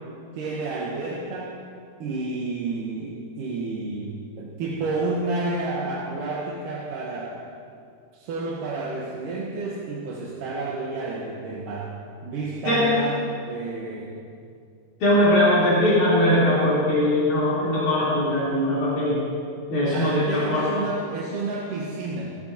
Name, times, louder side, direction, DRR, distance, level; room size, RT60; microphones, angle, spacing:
voice 1, 0.3-1.5 2.0-7.4 8.1-11.9 12.2-14.1 19.9-22.3, right 3 dB, 80° right, -4 dB, 2.7 m, -30 dB
voice 2, 15.0-19.2 19.7-20.7, left 1 dB, 65° left, -9 dB, 4.7 m, -20 dB
16.5 x 15.0 x 2.8 m, 2.3 s
omnidirectional pair, 3.7 m